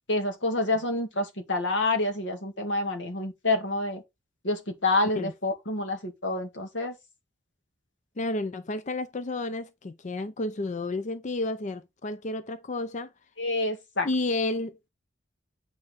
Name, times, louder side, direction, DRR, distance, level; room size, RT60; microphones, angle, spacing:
voice 1, 0.1-4.0 4.4-6.9 13.4-14.1, left 2 dB, 85° left, 2.1 m, -28 dB
voice 2, 8.2-13.1 14.0-14.9, left 2 dB, 40° left, 0.5 m, -31 dB
8.7 x 4.6 x 4.1 m
head